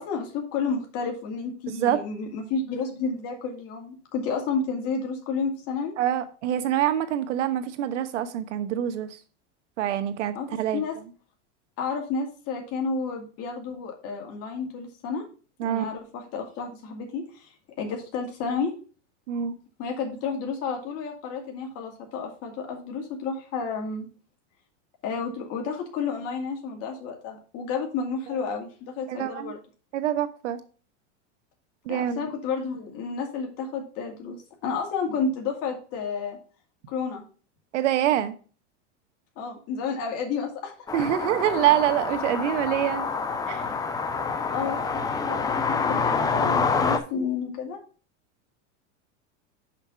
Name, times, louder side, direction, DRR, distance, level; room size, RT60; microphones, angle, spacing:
voice 1, 0.0-5.9 10.3-10.9 11.8-15.2 15.6-17.5 17.8-18.7 19.8-24.1 25.0-29.6 31.9-36.4 36.9-37.2 39.4-40.7 44.5-47.8, left 5 dB, 40° left, 2.2 m, -31 dB
voice 2, 1.7-2.0 6.0-9.2 9.8-10.8 15.6-15.9 19.3-19.5 29.1-29.5 29.9-30.6 31.8-32.3 37.7-38.3 40.9-43.1 43.5-43.7, right 11 dB, 85° right, 1.2 m, -25 dB
sound 1, 40.9-47.0, left 5 dB, 10° left, 0.5 m, -27 dB
5.8 x 5.6 x 5.5 m
supercardioid pair, 140°, 35 cm